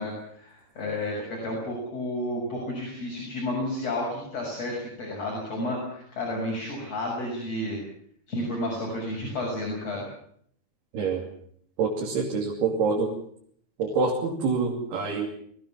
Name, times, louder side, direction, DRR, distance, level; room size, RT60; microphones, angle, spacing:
voice 1, 0.0-7.8 8.3-10.0, left 1 dB, 40° left, -3 dB, 7.7 m, -31 dB
voice 2, 11.8-13.1 13.8-15.3, right 4 dB, 85° right, -1 dB, 4.8 m, -26 dB
23.0 x 19.0 x 7.3 m, 0.65 s
omnidirectional pair, 4.4 m